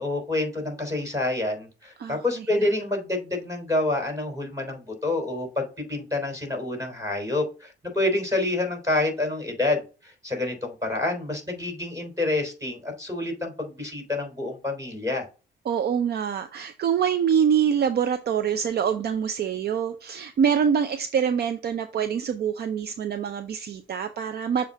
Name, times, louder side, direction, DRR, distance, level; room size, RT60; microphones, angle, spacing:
voice 1, 0.0-15.3, left 2 dB, 15° right, 3.7 m, -28 dB
voice 2, 2.0-2.5 15.7-24.6, right 7 dB, 55° right, 0.6 m, -25 dB
7.1 x 2.5 x 5.4 m
cardioid pair, 90°, 20 cm